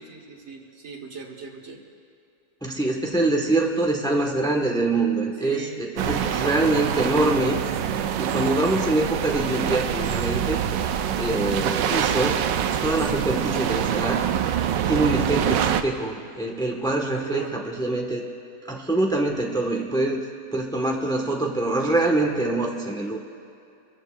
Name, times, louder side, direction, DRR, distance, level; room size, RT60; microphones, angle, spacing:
voice 1, 0.0-1.8 5.4-6.6 17.1-17.5, right 4 dB, 40° right, 0 dB, 1.6 m, -39 dB
voice 2, 2.6-7.6 8.2-10.6 11.2-12.4 12.8-14.2 14.9-18.2 18.7-20.2 20.5-23.2, right 2 dB, 5° left, 0 dB, 1.1 m, -24 dB
sound 1, 6.0-15.8, right 9 dB, 85° right, 1.3 m, -25 dB
26.5 x 14.5 x 2.5 m, 2.5 s
omnidirectional pair, 1.9 m